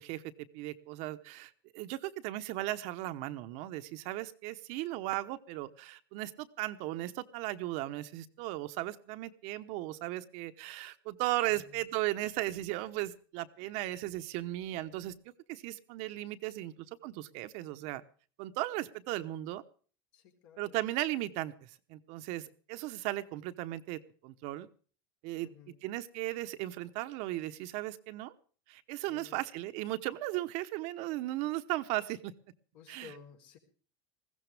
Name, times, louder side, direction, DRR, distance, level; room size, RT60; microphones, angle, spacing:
voice 1, 0.0-15.1 15.5-18.0 18.4-19.6 20.6-24.7 25.2-25.5 25.8-28.3 28.7-32.3 32.9-33.1, right 16 dB, 60° right, 10 dB, 1.0 m, -36 dB
voice 2, 11.5-11.8 16.5-16.8 20.1-20.8 25.4-25.8 29.1-29.4 32.7-33.6, left 7 dB, 65° left, 0 dB, 4.2 m, -55 dB
20.0 x 15.5 x 3.5 m, 0.40 s
supercardioid pair, 125°, 13 cm